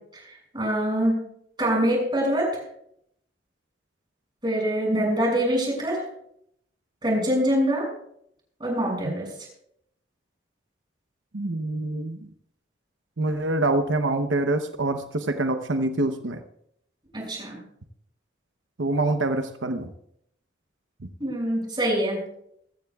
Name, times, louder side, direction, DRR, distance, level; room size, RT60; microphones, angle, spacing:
voice 1, 0.1-1.2 1.6-2.6 4.4-6.1 7.0-7.9 8.6-9.3 17.1-17.6 21.2-22.2, equal, 25° right, -1 dB, 6.5 m, -24 dB
voice 2, 11.3-12.2 13.2-16.4 18.8-19.9 21.0-21.1, right 2 dB, 90° right, 6 dB, 0.9 m, -25 dB
22.5 x 15.0 x 2.4 m, 0.73 s
head